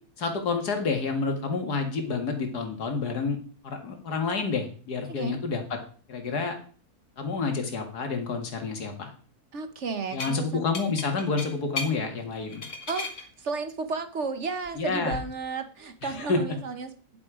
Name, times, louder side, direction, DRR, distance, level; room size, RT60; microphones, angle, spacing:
voice 1, 0.2-3.4 3.6-5.8 6.1-6.5 7.2-9.1 10.1-12.6 14.8-15.2 16.0-16.4, left 4 dB, 80° left, 5 dB, 2.4 m, -29 dB
voice 2, 5.1-5.4 9.5-10.7 12.9-16.9, right 4 dB, 50° right, 10 dB, 1.2 m, -33 dB
sound 1, 10.1-10.4 10.7-11.9 12.4-13.2 14.6-15.2, left 3 dB, 50° left, 1.9 m, -35 dB
11.0 x 7.6 x 4.9 m, 0.42 s
omnidirectional pair, 1.7 m